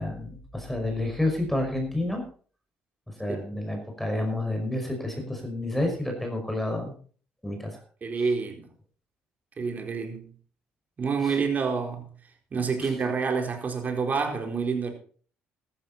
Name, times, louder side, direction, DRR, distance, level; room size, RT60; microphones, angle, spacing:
voice 1, 0.0-2.2 3.2-6.9 7.4-7.8 11.2-11.4 12.8-12.9, left 1 dB, 5° left, 5.5 m, -29 dB
voice 2, 8.0-8.7 9.6-10.3 11.0-12.1 12.5-14.9, right 5 dB, 40° right, 4.2 m, -28 dB
14.0 x 12.5 x 4.2 m
supercardioid pair, 80°, 4 cm